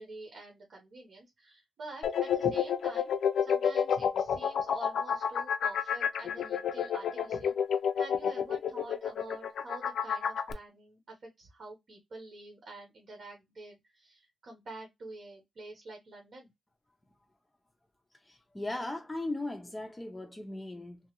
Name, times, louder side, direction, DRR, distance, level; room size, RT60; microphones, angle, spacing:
voice 1, 0.0-3.1 3.4-7.5 7.9-16.5, right 2 dB, 60° right, 1.0 m, -47 dB
sound 1, 2.0-10.5, left 8 dB, 85° left, 0.4 m, -29 dB
voice 2, 18.2-21.0, left 2 dB, 15° left, 0.4 m, -38 dB
3.0 x 2.4 x 2.9 m
wide cardioid pair, 115°, 0 cm